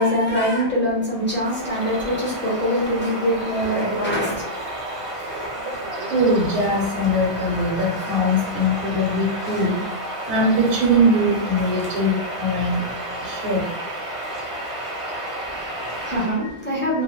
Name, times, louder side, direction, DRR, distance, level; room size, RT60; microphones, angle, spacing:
voice 1, 0.0-4.4 15.4-17.0, equal, 15° left, -5 dB, 0.5 m, -23 dB
Bird vocalization bird call bird song, 1.1-16.4, right 1 dB, 40° right, 0.5 m, -31 dB
voice 2, 6.1-9.8 10.3-12.9 13.2-13.6, equal, 70° right, -1 dB, 0.8 m, -21 dB
2.3 x 2.0 x 2.9 m, 0.77 s
omnidirectional pair, 1.2 m